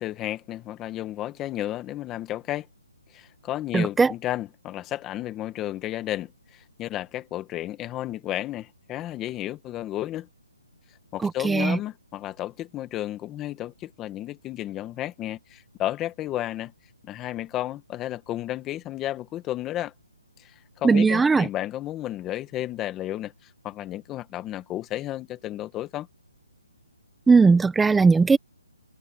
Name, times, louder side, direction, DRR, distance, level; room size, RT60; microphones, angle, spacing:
voice 1, 0.0-2.7 3.1-10.3 11.1-16.7 17.0-19.9 20.4-26.1, left 14 dB, 15° left, 1.8 m, -32 dB
voice 2, 3.7-4.1 11.2-11.8 20.8-21.5 27.3-28.4, right 4 dB, 5° right, 1.4 m, -18 dB
hypercardioid pair, 160°, 0 cm